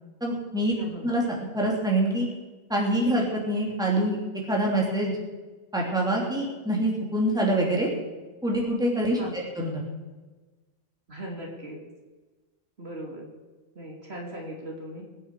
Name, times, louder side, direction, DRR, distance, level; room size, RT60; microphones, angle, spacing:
voice 1, 0.2-0.7 1.0-2.3 2.7-4.2 4.5-5.2 5.7-7.9 8.4-9.2 9.6-9.8, right 1 dB, 5° right, -2 dB, 3.0 m, -25 dB
voice 2, 0.7-1.1 9.2-9.4 11.1-11.8 12.8-13.3 13.7-15.0, right 1 dB, 55° right, -1 dB, 3.0 m, -38 dB
22.0 x 8.9 x 4.8 m, 1.2 s
omnidirectional pair, 1.3 m